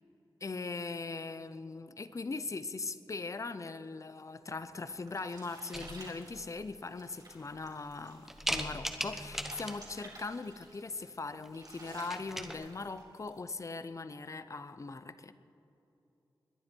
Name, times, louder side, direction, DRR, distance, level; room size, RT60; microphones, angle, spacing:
voice 1, 0.4-15.3, left 3 dB, 35° left, 13 dB, 0.6 m, -40 dB
sound 1, 4.5-13.4, right 2 dB, 50° right, 3.5 m, -54 dB
sound 2, 5.7-6.3 6.9-7.0 7.5-7.9 8.3-10.0 11.4-11.7 11.9-12.5, equal, 5° right, 0.9 m, -38 dB
21.0 x 10.5 x 4.5 m, 2.9 s
wide cardioid pair, 135°, 9 cm